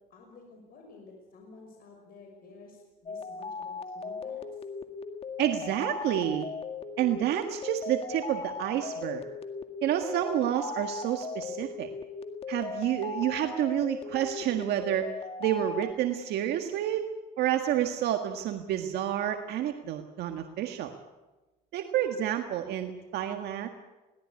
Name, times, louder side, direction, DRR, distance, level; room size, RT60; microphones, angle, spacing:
voice 1, 0.1-4.4, left 3 dB, 60° left, 1 dB, 6.0 m, -51 dB
sound 1, 3.1-15.9, left 4 dB, 35° left, 2.0 m, -38 dB
voice 2, 5.4-6.5 7.0-9.2 9.8-11.9 12.5-15.1 15.4-17.1 17.4-20.9 21.7-23.7, right 11 dB, 75° right, 5 dB, 1.7 m, -29 dB
21.5 x 18.0 x 9.7 m, 1.1 s
cardioid pair, 110°, 17 cm